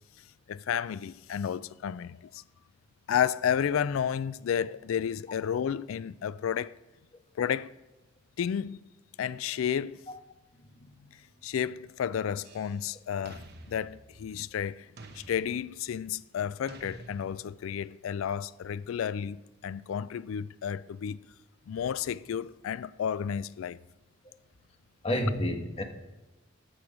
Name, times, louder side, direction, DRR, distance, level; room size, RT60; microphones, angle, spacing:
voice 1, 0.5-2.4 3.1-6.7 7.4-7.8 8.4-8.8 9.2-10.0 11.4-14.9 15.1-21.2 21.7-23.8, left 8 dB, 85° left, 0.3 m, -32 dB
sound 1, 12.4-12.9 13.3-14.5 15.0-16.1 16.7-17.7, right 2 dB, 55° right, 1.0 m, -50 dB
voice 2, 25.0-25.8, equal, 30° left, 1.3 m, -29 dB
14.0 x 6.2 x 5.0 m
head